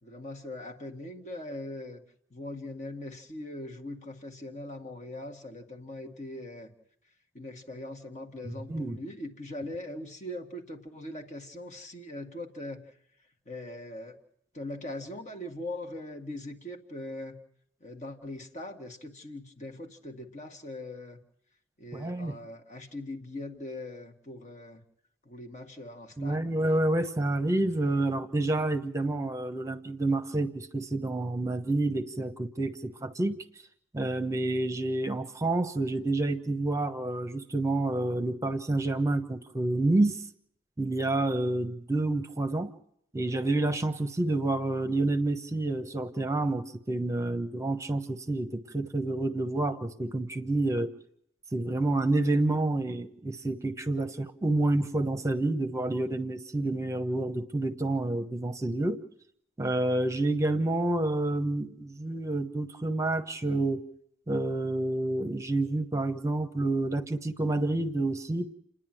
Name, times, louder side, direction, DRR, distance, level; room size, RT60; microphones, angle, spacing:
voice 1, 0.0-2.0 2.3-6.7 7.3-12.9 13.5-14.2 14.5-17.4 17.8-21.2 21.8-24.8 25.3-26.6, left 1 dB, 40° left, 3 dB, 1.9 m, -41 dB
voice 2, 8.4-9.0 21.9-22.4 26.2-33.4 33.9-40.2 40.8-42.7 43.1-50.9 51.5-59.0 59.6-63.8 64.3-68.5, right 2 dB, 15° right, 8 dB, 1.1 m, -28 dB
29.5 x 10.5 x 9.2 m, 0.74 s
head